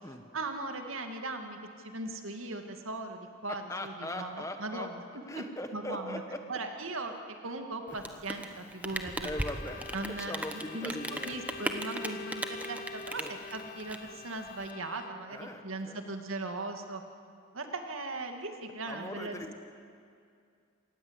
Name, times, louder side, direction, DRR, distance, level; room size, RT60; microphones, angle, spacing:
voice 1, 0.3-5.0 5.3-5.4 5.7-6.2 6.5-9.3 9.9-13.2 13.5-17.0 17.5-19.5, right 2 dB, 80° right, 5 dB, 2.1 m, -39 dB
voice 2, 3.5-4.9 5.3-6.4 9.2-11.4 13.1-13.4 15.3-16.0 18.9-19.5, left 1 dB, 15° left, 6 dB, 1.3 m, -40 dB
Rain, 7.9-14.7, right 1 dB, 5° right, 1.1 m, -38 dB
Bowed string instrument, 8.8-15.4, left 4 dB, 45° left, 0.6 m, -45 dB
26.5 x 19.0 x 8.1 m, 2.3 s
head